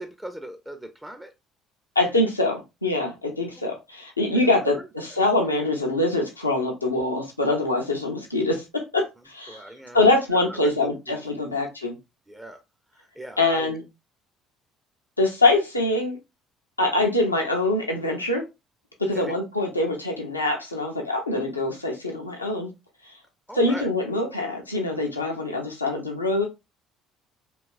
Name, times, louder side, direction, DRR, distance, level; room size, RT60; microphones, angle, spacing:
voice 1, 0.0-1.3 3.6-3.7 4.3-4.9 9.5-10.0 10.3-11.2 11.5-11.7 12.3-12.6 12.9-13.8 19.1-19.4 23.5-23.9, right 1 dB, 10° right, 0.4 m, -40 dB
voice 2, 2.0-9.6 9.9-12.0 13.4-13.8 15.2-16.2 16.8-18.4 19.0-22.7 23.1-23.2 23.5-26.5, left 2 dB, 90° left, 0.4 m, -24 dB
2.8 x 2.3 x 2.4 m
figure-of-eight pair, 55°, 0 cm